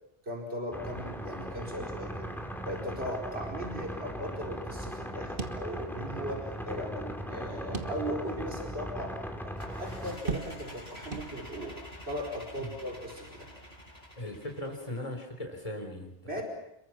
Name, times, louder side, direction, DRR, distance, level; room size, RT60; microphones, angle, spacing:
voice 1, 0.2-2.3 2.6-9.2 9.4-11.8 12.1-13.5 16.3-16.4, equal, 80° right, 0 dB, 4.8 m, -38 dB
sound 1, 0.7-10.2, equal, ahead, 2.6 m, -38 dB
sound 2, 5.4-6.3 6.6-6.7 7.7-8.4 8.9-9.0 10.3-10.8 11.1-11.8, right 5 dB, 55° right, 1.8 m, -38 dB
sound 3, 9.6-15.1, left 1 dB, 80° left, 6.4 m, -48 dB
voice 2, 14.2-16.4, left 1 dB, 35° left, 4 dB, 3.9 m, -39 dB
27.5 x 23.0 x 6.1 m, 0.82 s
omnidirectional pair, 1.0 m